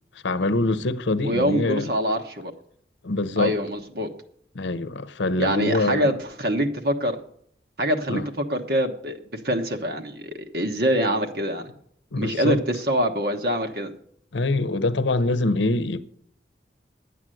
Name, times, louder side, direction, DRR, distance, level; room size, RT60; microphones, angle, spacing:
voice 1, 0.2-1.9 3.0-3.6 4.5-6.1 8.1-8.3 12.1-12.6 14.3-16.0, left 2 dB, 85° left, 0.7 m, -24 dB
voice 2, 1.2-2.5 3.4-4.1 5.4-6.1 6.4-7.2 7.8-9.2 9.4-11.7 12.2-13.9, equal, 55° right, 1.2 m, -24 dB
11.0 x 8.2 x 7.7 m
head